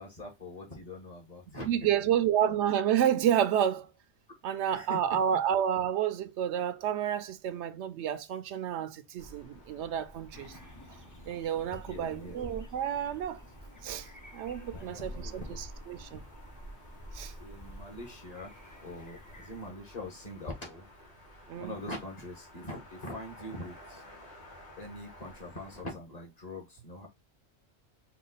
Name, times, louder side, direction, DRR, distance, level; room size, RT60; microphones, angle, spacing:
voice 1, 0.0-1.7 4.7-5.2 11.9-12.4 14.7-15.6 17.4-18.5 18.8-20.9 21.5-24.0 24.8-27.1, left 1 dB, 35° left, 1.3 m, -43 dB
voice 2, 1.6-3.9 4.4-10.6 11.3-13.4 13.8-14.1 14.3-16.2 17.1-17.3 21.5-21.8, right 9 dB, 85° right, 0.9 m, -30 dB
sound 1, 9.2-25.8, equal, 85° left, 1.8 m, -53 dB
sound 2, 10.3-19.7, equal, 20° left, 0.6 m, -49 dB
4.7 x 2.4 x 3.9 m
omnidirectional pair, 1.1 m